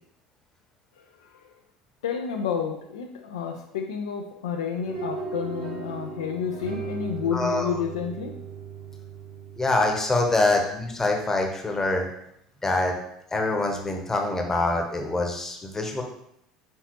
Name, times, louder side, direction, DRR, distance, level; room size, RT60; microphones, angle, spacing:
voice 1, 1.0-1.4 2.0-8.4, left 7 dB, 70° left, 3 dB, 0.4 m, -30 dB
sound 1, 4.8-11.0, right 4 dB, 85° right, 1.1 m, -37 dB
voice 2, 7.3-7.8 9.6-12.1 12.6-12.9 13.3-16.0, left 2 dB, 15° left, 2 dB, 0.9 m, -25 dB
4.4 x 3.8 x 3.0 m, 0.77 s
figure-of-eight pair, 65°, 3 cm